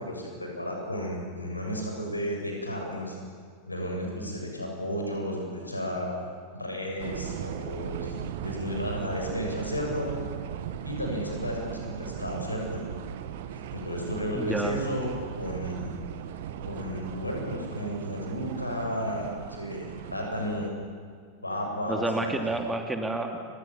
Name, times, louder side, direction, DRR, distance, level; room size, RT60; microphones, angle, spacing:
voice 1, 0.0-3.2 3.7-6.1 6.5-10.1 10.8-12.8 13.7-15.9 16.6-20.7 21.4-22.4, equal, 85° left, 0 dB, 7.1 m, -33 dB
sound 1, 7.0-20.7, right 9 dB, 55° right, 1.6 m, -38 dB
voice 2, 14.3-14.8 21.9-23.4, right 2 dB, 10° right, 5 dB, 2.9 m, -29 dB
30.0 x 25.5 x 7.4 m, 2.1 s
figure-of-eight pair, 90°, 0 cm